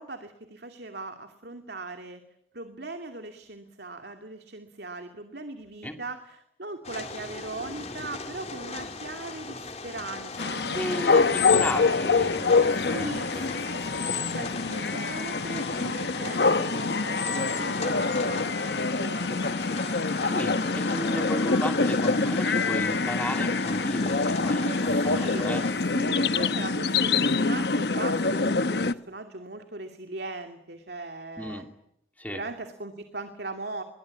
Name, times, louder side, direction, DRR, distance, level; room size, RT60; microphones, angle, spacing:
voice 1, 0.0-2.2 2.5-11.5 12.7-20.4 24.6-25.5 25.8-31.6 32.3-33.8, right 2 dB, 65° right, 6 dB, 2.6 m, -39 dB
sound 1, 6.8-25.7, left 3 dB, 35° left, 3.7 m, -40 dB
sound 2, 10.4-28.9, left 4 dB, 65° left, 1.0 m, -25 dB
voice 2, 10.7-13.5 20.2-25.6 31.4-31.7 32.2-32.4, left 1 dB, 10° left, 5 dB, 2.7 m, -34 dB
27.5 x 22.5 x 8.5 m, 0.76 s
head